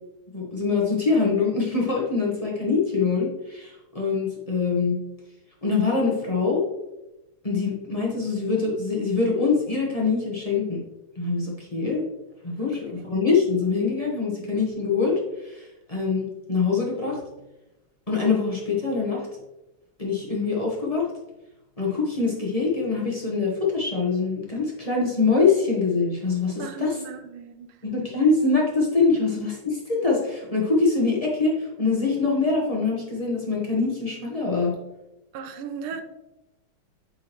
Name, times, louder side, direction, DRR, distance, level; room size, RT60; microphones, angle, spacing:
voice 1, 0.3-5.0 5.6-6.6 7.4-10.8 11.2-12.1 12.4-17.2 18.1-19.3 20.0-21.1 21.8-27.0 27.8-34.7, left 4 dB, 25° left, 0.8 m, -24 dB
voice 2, 26.6-27.8 35.3-36.0, right 6 dB, 80° right, 1.5 m, -36 dB
8.5 x 4.2 x 3.0 m
omnidirectional pair, 2.4 m